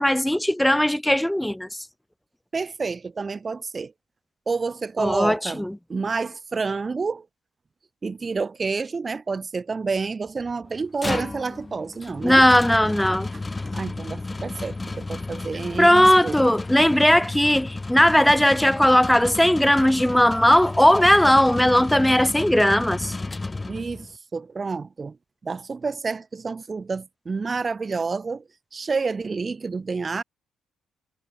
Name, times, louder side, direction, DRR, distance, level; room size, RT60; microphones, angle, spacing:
voice 1, 0.0-1.7 5.0-5.8 12.2-13.3 15.8-23.1, left 1 dB, 5° left, 0.3 m, -18 dB
voice 2, 2.5-3.9 4.5-5.6 5.9-7.3 8.0-12.4 13.7-16.4 23.7-25.2 25.4-28.4 28.7-30.2, right 4 dB, 30° right, 1.0 m, -29 dB
sound 1, 10.7-24.2, left 3 dB, 20° left, 5.1 m, -33 dB
cardioid pair, 90°, 0 cm